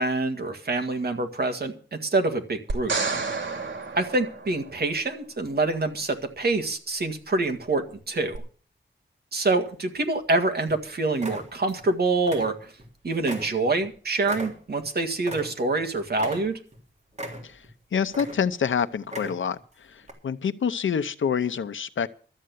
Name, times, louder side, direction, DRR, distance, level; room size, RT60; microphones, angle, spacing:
voice 1, 0.0-2.9 4.0-8.4 9.3-12.7 13.0-16.6, right 3 dB, 55° right, 7 dB, 1.8 m, -26 dB
sound 1, 2.7-5.0 8.3-8.4, right 4 dB, 90° right, 2.5 m, -30 dB
sound 2, 9.7-10.3 10.7-10.8 11.2-11.9 12.2-12.9 13.3-15.8 16.1-16.8 17.1-17.7 18.1-18.7 19.0-19.6 20.0-20.1, right 1 dB, 35° right, 3.5 m, -38 dB
voice 2, 17.9-22.1, left 7 dB, 90° left, 12 dB, 0.8 m, -27 dB
13.0 x 7.7 x 8.3 m, 0.42 s
wide cardioid pair, 115°, 19 cm